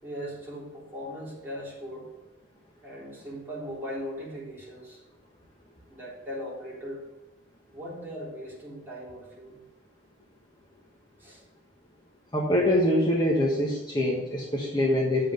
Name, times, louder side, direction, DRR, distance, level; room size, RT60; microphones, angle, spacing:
voice 1, 0.0-2.1 2.8-5.0 5.9-7.1 7.7-9.6 11.2-11.4, equal, 10° right, -6 dB, 3.7 m, -39 dB
voice 2, 12.3-15.3, left 1 dB, 25° left, -2 dB, 1.3 m, -24 dB
8.7 x 7.5 x 5.3 m, 1.1 s
head